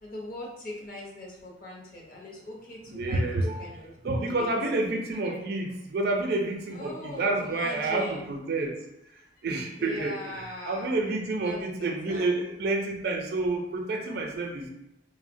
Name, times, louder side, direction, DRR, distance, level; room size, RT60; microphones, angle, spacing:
voice 1, 0.0-3.9 4.3-4.5 5.1-5.3 6.7-8.2 9.2-9.3 9.8-10.9 11.4-12.3, left 1 dB, 45° left, -2 dB, 0.7 m, -40 dB
voice 2, 2.9-3.7 4.0-8.8 9.4-14.7, right 2 dB, 55° right, 2 dB, 0.4 m, -29 dB
3.2 x 2.0 x 2.5 m, 0.85 s
head